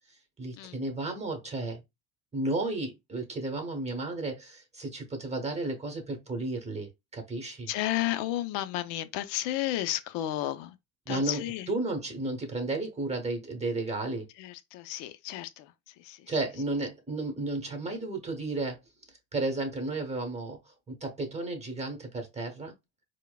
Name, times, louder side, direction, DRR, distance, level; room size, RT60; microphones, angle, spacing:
voice 1, 0.4-1.8 2.3-7.7 11.1-14.3 16.3-18.8 19.3-20.6 20.9-22.7, right 2 dB, 15° right, 1.1 m, -33 dB
voice 2, 7.7-10.8 11.1-11.7 14.4-15.7 16.0-16.2, left 14 dB, 60° left, 0.6 m, -32 dB
4.5 x 2.2 x 2.3 m
supercardioid pair, 95°, 49 cm